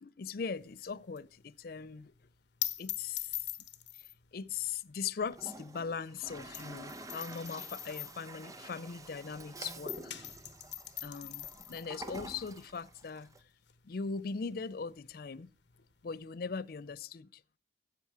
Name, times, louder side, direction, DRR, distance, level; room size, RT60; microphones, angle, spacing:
voice 1, 0.0-2.1 2.8-3.5 3.9-10.1 11.0-13.3 13.8-15.5 16.0-17.4, left 5 dB, 55° left, 0.4 m, -40 dB
sound 1, 0.6-9.4 9.7-17.0, left 14 dB, 75° left, 1.0 m, -44 dB
Toilet flush, 5.2-13.4, right 1 dB, 20° right, 0.8 m, -48 dB
13.5 x 8.4 x 4.7 m
head